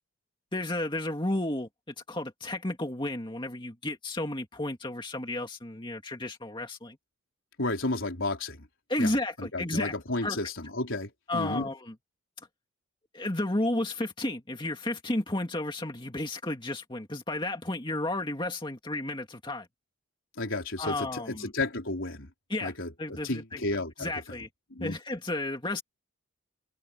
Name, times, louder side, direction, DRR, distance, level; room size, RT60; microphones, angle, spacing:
voice 1, 0.5-7.0 8.9-9.9 10.2-10.4 11.3-11.9 13.1-19.7 20.8-21.5 22.5-22.7 23.0-23.6 24.0-24.5 24.8-25.8, left 1 dB, 20° left, 2.2 m, -32 dB
voice 2, 7.6-8.7 9.0-11.7 20.4-22.3 22.6-24.1 24.7-25.0, left 2 dB, 65° left, 4.0 m, -32 dB
head